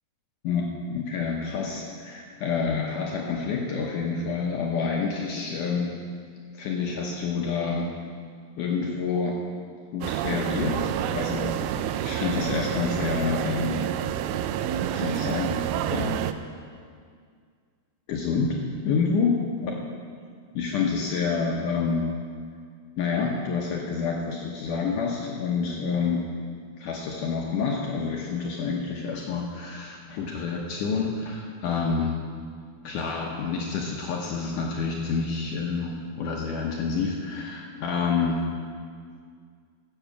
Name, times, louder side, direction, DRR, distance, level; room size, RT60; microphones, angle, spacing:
voice 1, 0.4-6.0 6.5-7.9 8.6-9.4 9.9-11.6 12.0-13.8 14.9-15.6 15.9-16.3 18.1-18.6 18.8-19.3 19.6-19.7 20.5-22.0 23.0-26.2 26.8-32.2 32.8-38.4, left 5 dB, 75° left, -1 dB, 1.9 m, -28 dB
sound 1, 10.0-16.3, right 10 dB, 85° right, 2.2 m, -28 dB
14.5 x 7.5 x 7.1 m, 2.1 s
omnidirectional pair, 4.9 m